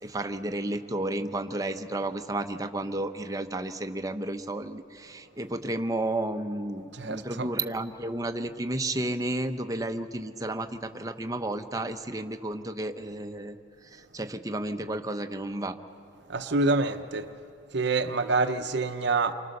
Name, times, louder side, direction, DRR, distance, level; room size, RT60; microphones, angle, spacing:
voice 1, 0.0-13.6 13.9-15.8, right 1 dB, 20° right, 0.8 m, -32 dB
voice 2, 6.9-7.5 16.3-17.3 17.7-19.3, right 3 dB, 60° right, 0.8 m, -26 dB
28.5 x 24.0 x 6.6 m
head